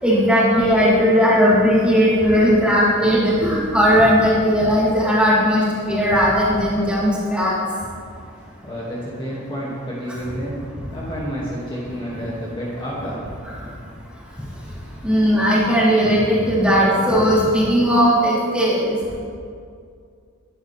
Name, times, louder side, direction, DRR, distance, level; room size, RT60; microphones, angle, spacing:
voice 1, 0.0-7.6 15.0-19.0, equal, 5° right, -8 dB, 4.1 m, -17 dB
voice 2, 8.6-10.6 10.9-13.2 13.5-13.6, equal, 25° left, -7 dB, 2.5 m, -29 dB
22.5 x 11.5 x 3.6 m, 2.3 s
head